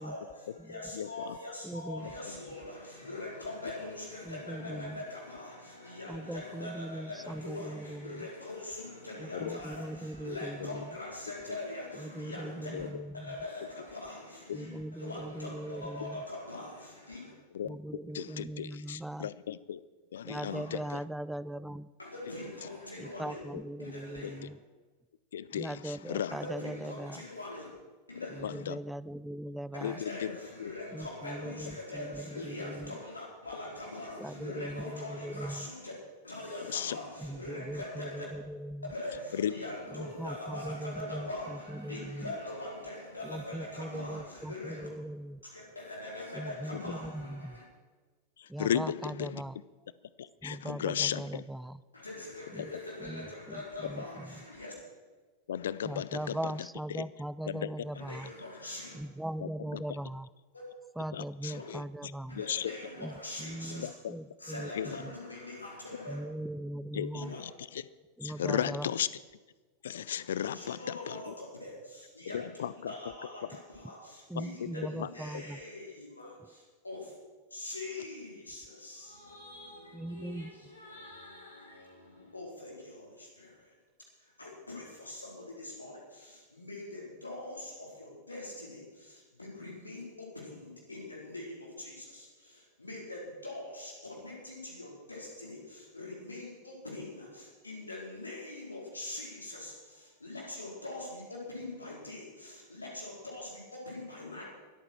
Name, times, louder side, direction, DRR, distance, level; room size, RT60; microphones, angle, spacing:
voice 1, 0.0-12.9 13.1-17.3 20.4-20.6 22.0-23.4 23.8-24.4 26.3-27.7 28.1-28.5 29.7-35.9 36.2-38.3 38.8-44.9 45.4-47.6 51.9-54.7 57.9-59.0 60.5-60.6 61.4-61.6 62.3-63.9 64.4-66.2 67.2-67.4 70.5-77.1 77.5-83.8 84.2-104.4, left 2 dB, 80° left, -3 dB, 4.4 m, -43 dB
voice 2, 0.9-1.4 4.7-4.8 9.3-9.6 10.6-10.8 12.7-12.9 14.5-14.6 17.5-17.8 18.1-19.8 20.1-21.0 23.5-23.6 24.2-24.3 25.3-26.4 28.2-28.8 29.8-30.3 30.6-30.7 36.7-37.0 39.3-39.5 46.7-46.8 48.4-49.4 50.2-51.4 53.8-53.9 55.5-56.4 56.9-57.0 57.5-57.7 58.0-58.1 59.4-59.8 61.1-62.7 63.8-64.1 64.7-65.0 66.9-67.9 68.2-69.2 69.8-71.3 72.2-72.9 73.4-73.5 74.4-74.7 75.0-75.4, left 9 dB, 60° left, 19 dB, 0.5 m, -35 dB
voice 3, 1.6-2.1 4.3-5.0 6.1-8.3 9.2-10.9 12.0-13.3 14.5-16.2 17.6-19.3 20.2-21.9 23.0-24.6 25.5-27.2 28.3-30.0 30.9-33.0 34.2-35.7 37.2-38.9 39.9-42.3 43.2-45.4 46.3-47.6 48.5-49.5 50.4-51.8 52.5-52.7 53.0-54.4 55.8-58.3 58.9-60.3 61.0-62.4 63.0-65.1 66.1-67.4 68.2-68.9 74.3-75.6 79.9-80.6, right 1 dB, 5° right, 17 dB, 0.4 m, -40 dB
23.0 x 8.9 x 4.6 m, 1.3 s
figure-of-eight pair, 90°, 0 cm